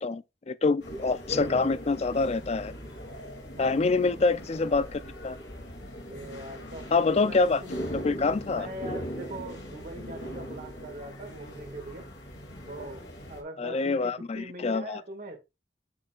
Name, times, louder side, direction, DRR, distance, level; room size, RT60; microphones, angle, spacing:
voice 1, 0.0-2.7 3.6-5.4 6.9-7.6 8.0-8.7 13.6-15.0, left 3 dB, 35° left, 0.4 m, -26 dB
sound 1, 0.8-13.4, equal, 70° left, 2.6 m, -40 dB
voice 2, 6.1-7.7 8.5-12.1 12.7-13.0 13.3-15.4, right 1 dB, 50° right, 1.9 m, -42 dB
9.7 x 5.5 x 2.4 m
head